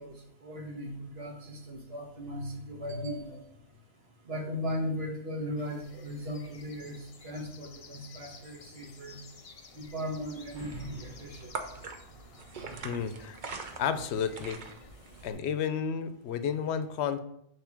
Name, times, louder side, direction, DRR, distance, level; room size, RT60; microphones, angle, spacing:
voice 1, 0.0-3.4 4.2-9.2 9.7-11.5, equal, 70° right, 0 dB, 1.7 m, -37 dB
sound 1, 5.6-15.4, left 4 dB, 40° left, 0.5 m, -54 dB
sound 2, 10.2-15.3, right 4 dB, 50° right, 0.8 m, -43 dB
voice 2, 12.8-13.4 13.7-14.6 15.2-17.2, left 7 dB, 80° left, 11 dB, 0.9 m, -31 dB
6.8 x 3.3 x 5.8 m, 0.71 s
omnidirectional pair, 1.1 m